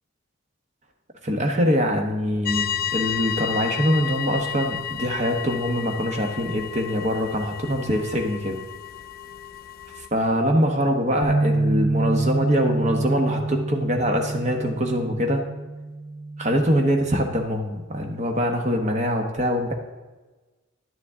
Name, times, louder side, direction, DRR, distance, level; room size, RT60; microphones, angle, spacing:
voice 1, 1.2-8.6 10.0-15.4 16.4-19.7, equal, 30° right, 3 dB, 1.0 m, -23 dB
sound 1, 2.4-10.1, left 9 dB, 45° left, 0.3 m, -32 dB
Bass guitar, 11.2-17.5, right 2 dB, 60° right, 0.8 m, -27 dB
10.5 x 9.6 x 3.6 m, 1.2 s
head